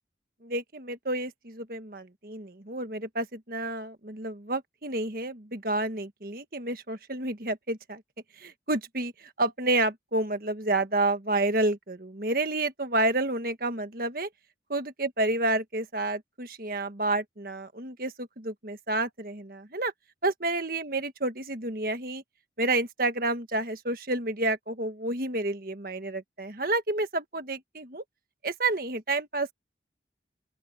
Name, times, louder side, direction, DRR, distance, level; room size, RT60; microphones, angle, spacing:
voice 1, 0.4-8.0 8.4-14.3 14.7-19.9 20.2-22.2 22.6-28.0 28.4-29.5, right 2 dB, 50° right, 1.6 m, -30 dB
open air
head